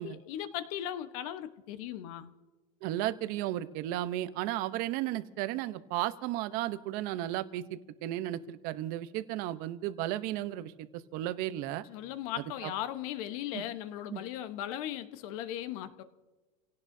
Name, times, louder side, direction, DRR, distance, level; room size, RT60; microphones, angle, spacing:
voice 1, 0.0-2.3 11.8-16.0, left 11 dB, 60° left, 10 dB, 1.1 m, -38 dB
voice 2, 2.8-11.8 12.6-12.7 13.5-13.6 14.1-14.2, right 14 dB, 45° right, 12 dB, 0.8 m, -34 dB
28.5 x 17.5 x 2.7 m, 1.2 s
supercardioid pair, 150°, 21 cm